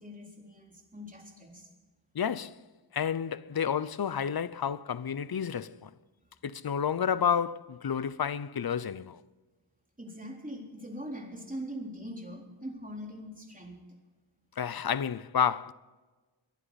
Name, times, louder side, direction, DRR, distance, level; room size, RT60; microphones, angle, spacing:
voice 1, 0.0-1.7 10.0-13.8, equal, 15° right, 3.7 m, -42 dB
voice 2, 2.1-2.6 2.9-5.9 6.4-9.2 14.6-15.7, left 7 dB, 50° left, 0.6 m, -30 dB
22.0 x 11.5 x 4.1 m
wide cardioid pair, 70°, 48 cm